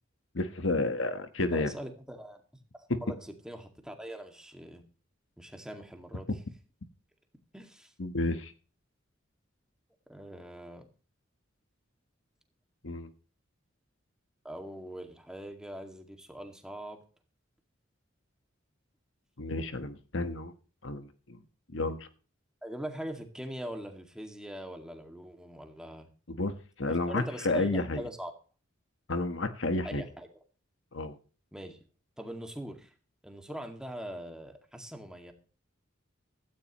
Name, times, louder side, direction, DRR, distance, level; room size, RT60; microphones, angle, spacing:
voice 1, 0.3-1.7 2.9-3.0 8.0-8.5 12.8-13.1 19.4-20.5 20.8-21.4 21.7-22.1 26.3-26.5 26.8-28.0 29.1-30.0 30.9-31.2, left 2 dB, 70° left, 1.3 m, -31 dB
voice 2, 1.5-2.4 2.7-4.8 5.4-6.3 7.5-7.9 10.1-10.9 14.4-17.0 22.6-26.1 26.8-28.3 29.8-30.3 31.5-31.8 32.2-32.9 33.2-35.3, equal, 5° right, 2.2 m, -42 dB
16.5 x 13.5 x 3.1 m
head